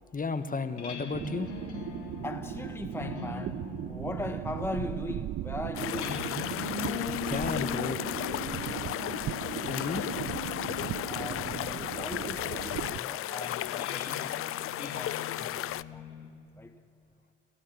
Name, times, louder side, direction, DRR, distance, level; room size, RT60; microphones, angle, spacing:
voice 1, 0.1-1.5 7.2-8.0 9.7-10.0, left 4 dB, 25° left, 11 dB, 1.4 m, -33 dB
sound 1, 0.6-16.3, left 6 dB, 85° left, 2.3 m, -41 dB
sound 2, 1.1-13.0, right 13 dB, 45° right, 0.5 m, -38 dB
voice 2, 2.2-6.2 11.0-16.3 16.6-16.8, left 2 dB, 5° left, 7 dB, 1.1 m, -39 dB
sound 3, 5.7-15.8, left 13 dB, 40° left, 0.5 m, -35 dB
26.5 x 16.5 x 7.1 m, 2.5 s
hypercardioid pair, 60°, 33 cm